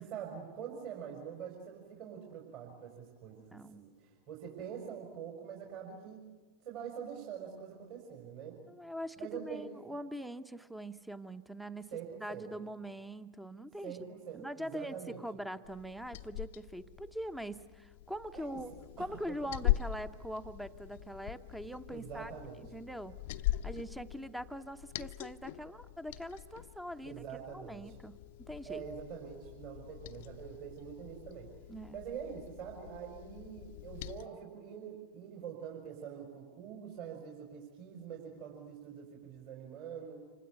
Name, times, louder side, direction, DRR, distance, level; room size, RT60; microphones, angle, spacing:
voice 1, 0.0-6.2 6.6-8.6 9.2-9.7 11.9-12.6 13.8-15.2 18.3-18.6 19.0-19.1 19.4-19.5 21.9-22.6 27.0-28.0 28.6-31.5 31.9-40.3, right 8 dB, 45° right, 1 dB, 5.1 m, -45 dB
voice 2, 3.5-3.8 8.7-11.9 12.2-14.0 14.3-18.7 19.0-23.2 23.6-28.8 31.7-32.0, equal, 5° right, 12 dB, 1.0 m, -43 dB
Liquid, 15.6-34.3, left 15 dB, 50° left, 0.8 m, -41 dB
27.5 x 25.5 x 8.3 m, 1.4 s
figure-of-eight pair, 90°, 0 cm